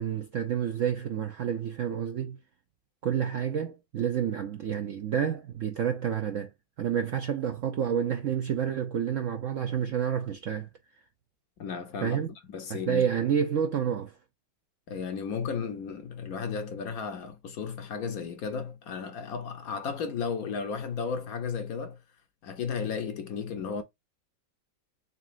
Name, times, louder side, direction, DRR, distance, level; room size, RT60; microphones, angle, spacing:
voice 1, 0.0-2.4 3.0-6.5 6.8-10.7 12.0-12.3 12.7-14.1, right 8 dB, 70° right, 0.7 m, -29 dB
voice 2, 11.6-12.2 12.5-13.0 14.9-22.0 22.4-23.8, left 6 dB, 65° left, 1.0 m, -34 dB
4.0 x 3.7 x 2.5 m
omnidirectional pair, 2.0 m